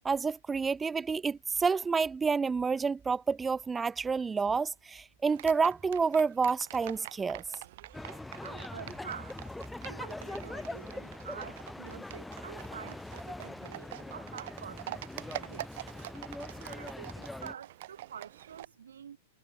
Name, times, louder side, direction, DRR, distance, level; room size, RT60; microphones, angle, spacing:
voice 1, 0.0-7.4, right 5 dB, 15° right, 0.4 m, -29 dB
Livestock farm animals working animals, 5.3-18.7, right 16 dB, 60° right, 1.6 m, -46 dB
sound 1, 7.9-17.5, left 2 dB, 5° left, 2.7 m, -42 dB
voice 2, 8.4-9.4 9.9-15.9 16.4-19.2, right 8 dB, 80° right, 1.5 m, -47 dB
hypercardioid pair, 110°, 0 cm